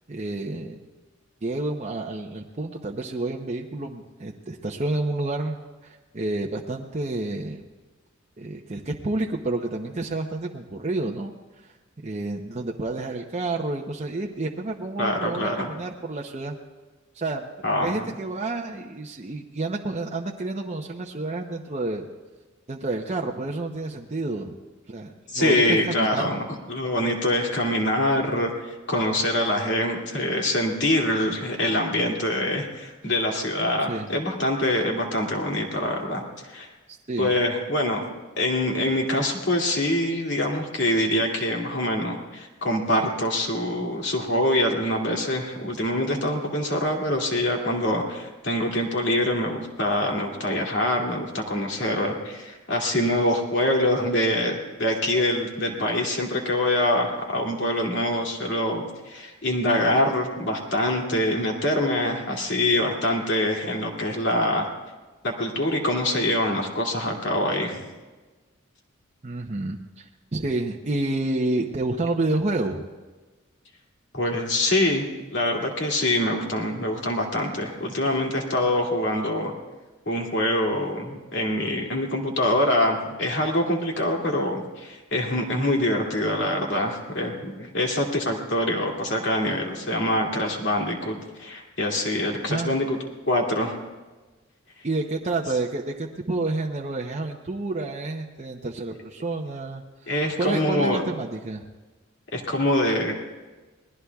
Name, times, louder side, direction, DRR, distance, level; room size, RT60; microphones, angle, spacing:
voice 1, 0.1-0.8 1.4-5.6 5.8-7.6 8.4-11.3 11.6-11.7 12.0-16.6 17.1-17.5 17.8-22.1 22.7-24.5 24.9-26.4 33.9-34.1 37.1-37.3 69.2-72.8 92.5-92.7 94.8-100.1 100.4-101.6, right 2 dB, 35° right, 0 dB, 0.8 m, -29 dB
voice 2, 15.0-15.7 17.6-18.1 25.3-28.5 28.9-36.7 37.2-38.0 38.4-64.7 65.2-67.9 74.1-75.0 75.3-79.5 80.1-93.0 93.3-93.7 100.1-101.0 102.3-103.1, left 1 dB, 60° left, 0 dB, 2.6 m, -25 dB
28.0 x 20.0 x 2.4 m, 1.3 s
head